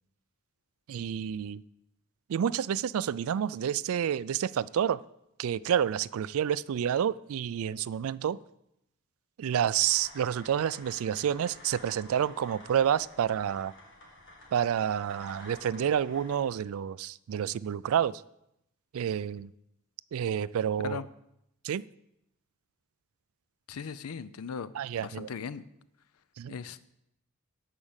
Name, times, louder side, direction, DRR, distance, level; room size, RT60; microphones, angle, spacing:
voice 1, 0.9-1.6 2.3-5.0 5.4-8.4 9.4-13.7 14.5-18.2 18.9-19.5 20.1-21.0 21.6-21.9 24.7-25.3 26.4-26.6, right 9 dB, 65° right, 0.3 m, -29 dB
sound 1, 9.8-16.4, left 1 dB, 55° left, 2.2 m, -51 dB
voice 2, 23.7-24.7 25.0-25.7 26.5-26.9, left 6 dB, 75° left, 0.5 m, -38 dB
11.5 x 4.9 x 7.3 m
head